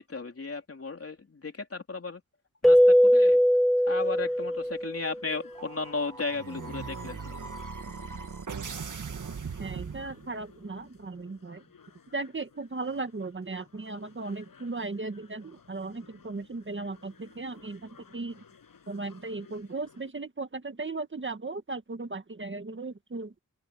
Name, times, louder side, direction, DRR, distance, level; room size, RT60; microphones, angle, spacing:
voice 1, 0.0-2.2 2.6-3.4 3.9-7.4, left 4 dB, 45° left, 3.4 m, -35 dB
Keyboard (musical), 2.6-5.2, equal, ahead, 0.3 m, -21 dB
sound 1, 4.0-20.1, left 6 dB, 90° left, 6.0 m, -58 dB
sound 2, 5.5-10.6, right 5 dB, 65° right, 2.0 m, -39 dB
voice 2, 9.6-11.6 12.1-18.4 18.9-23.3, right 3 dB, 35° right, 1.6 m, -36 dB
open air
wide cardioid pair, 90°, 33 cm